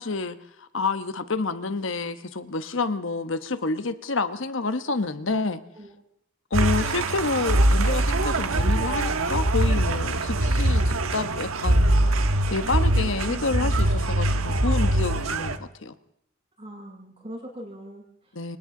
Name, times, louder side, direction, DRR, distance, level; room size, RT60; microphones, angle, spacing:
voice 1, 0.0-5.6 6.5-12.1 12.5-15.9 18.3-18.6, left 3 dB, 60° left, 1.1 m, -29 dB
sound 1, 6.5-15.6, right 1 dB, 75° right, 1.3 m, -23 dB
voice 2, 13.3-13.7 16.6-18.6, equal, 30° right, 7.6 m, -41 dB
30.0 x 24.5 x 3.8 m
head